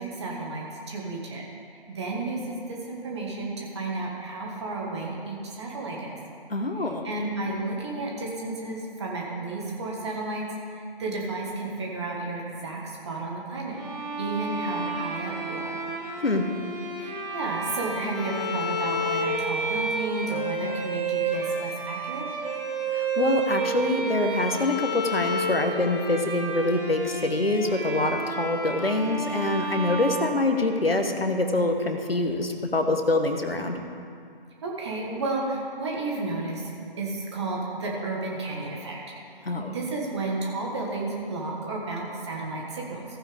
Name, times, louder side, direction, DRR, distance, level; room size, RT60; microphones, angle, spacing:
voice 1, 0.0-1.4 1.9-6.2 6.8-10.4 10.7-12.8 13.1-13.8 14.2-15.8 17.0-22.3 34.6-36.7 37.0-39.0 39.7-43.1, right 2 dB, 30° right, -2 dB, 1.8 m, -32 dB
voice 2, 6.5-7.1 16.2-16.5 22.9-33.8 39.4-39.7, left 2 dB, 80° left, 5 dB, 1.3 m, -25 dB
Bowed string instrument, 13.7-31.0, right 2 dB, 10° right, 1.3 m, -31 dB
15.0 x 9.2 x 3.6 m, 2.3 s
figure-of-eight pair, 145°, 29 cm